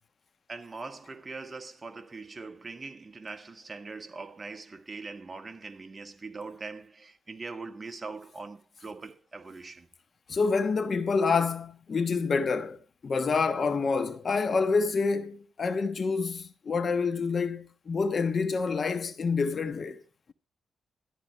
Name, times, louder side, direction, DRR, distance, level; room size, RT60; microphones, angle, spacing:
voice 1, 0.5-9.9, right 3 dB, 30° right, 1.4 m, -42 dB
voice 2, 10.3-20.0, left 4 dB, 45° left, 1.2 m, -27 dB
13.5 x 10.5 x 4.5 m
cardioid pair, 95°, 0 cm